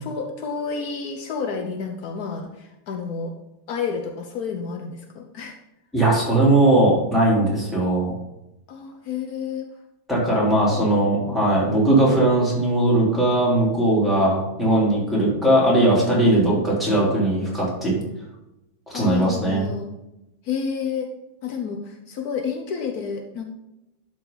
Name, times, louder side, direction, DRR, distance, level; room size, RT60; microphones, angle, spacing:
voice 1, 0.0-3.3 3.7-5.6 8.7-9.7 10.6-11.0 11.3-11.4 18.9-19.9 20.4-21.1 21.4-23.5, left 6 dB, 75° left, 4 dB, 1.3 m, -30 dB
voice 2, 5.9-8.1 10.1-18.0 18.9-19.7, right 1 dB, ahead, -7 dB, 3.4 m, -19 dB
12.0 x 4.7 x 4.0 m, 0.92 s
omnidirectional pair, 1.7 m